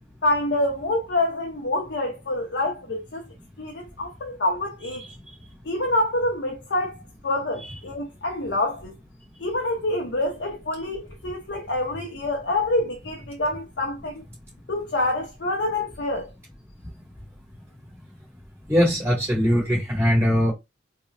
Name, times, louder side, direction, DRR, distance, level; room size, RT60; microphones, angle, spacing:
voice 1, 0.2-3.2 3.6-5.0 5.6-9.0 9.4-14.2 14.7-16.3, left 2 dB, 65° left, 0.7 m, -26 dB
voice 2, 18.7-20.5, equal, 15° right, 2.0 m, -21 dB
3.2 x 2.9 x 3.2 m
head